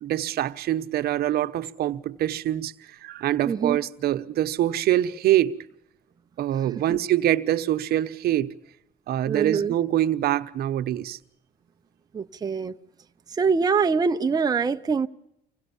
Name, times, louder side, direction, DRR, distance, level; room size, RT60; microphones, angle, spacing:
voice 1, 0.0-5.6 6.4-8.5 9.1-11.2, right 12 dB, 65° right, 1.0 m, -24 dB
voice 2, 3.4-3.8 6.9-7.0 9.3-9.7 12.1-12.7 13.3-15.1, right 5 dB, 25° right, 0.7 m, -24 dB
25.5 x 18.0 x 7.0 m
cardioid pair, 110°, 17 cm